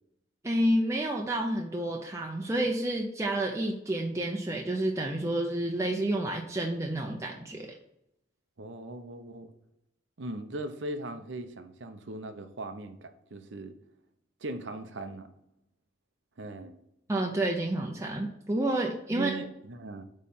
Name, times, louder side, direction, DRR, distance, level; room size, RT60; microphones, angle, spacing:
voice 1, 0.4-7.7 17.1-19.3, right 1 dB, 15° right, 0 dB, 0.6 m, -29 dB
voice 2, 8.6-9.5 10.2-13.8 14.4-15.3 16.4-16.7 19.1-20.0, right 2 dB, 75° right, 9 dB, 0.8 m, -39 dB
8.4 x 3.2 x 5.5 m, 0.82 s
head